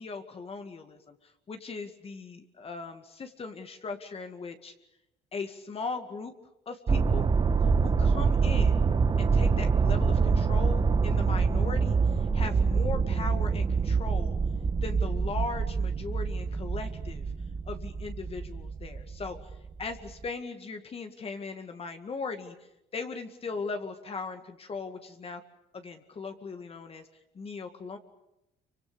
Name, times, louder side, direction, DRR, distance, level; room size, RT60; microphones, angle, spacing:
voice 1, 0.0-4.7 5.3-6.3 6.7-7.3 7.8-14.4 14.8-17.2 17.7-19.4 19.8-22.6 22.9-25.4 25.7-27.1 27.3-28.0, left 4 dB, 35° left, 6 dB, 2.1 m, -38 dB
sound 1, 6.9-19.6 20.1-20.2, right 5 dB, 25° right, 1.3 m, -25 dB
28.0 x 24.5 x 6.9 m, 0.88 s
cardioid pair, 110°, 17 cm